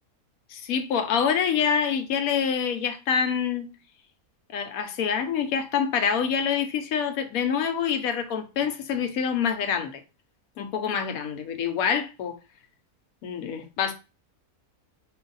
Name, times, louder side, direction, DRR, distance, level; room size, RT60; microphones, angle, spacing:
voice 1, 0.5-3.7 4.5-10.0 10.6-12.4 13.2-13.9, left 7 dB, 75° left, 1.1 m, -26 dB
4.7 x 2.5 x 3.9 m
omnidirectional pair, 1.6 m